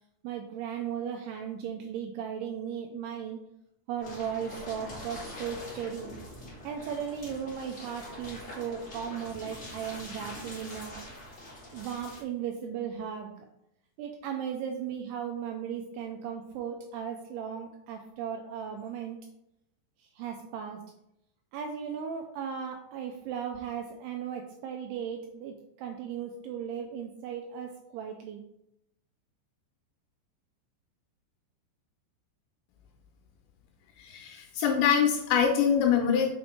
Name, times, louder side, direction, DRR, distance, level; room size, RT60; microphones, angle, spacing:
voice 1, 0.2-3.4 3.9-6.2 6.6-11.0 11.7-13.5 14.0-19.2 20.0-20.8 21.5-28.4, right 8 dB, 85° right, 3 dB, 2.3 m, -36 dB
sound 1, 4.0-12.2, left 1 dB, 25° left, 1.8 m, -44 dB
voice 2, 34.0-36.3, left 7 dB, 85° left, 2 dB, 3.0 m, -24 dB
6.3 x 4.2 x 4.4 m, 0.81 s
omnidirectional pair, 5.1 m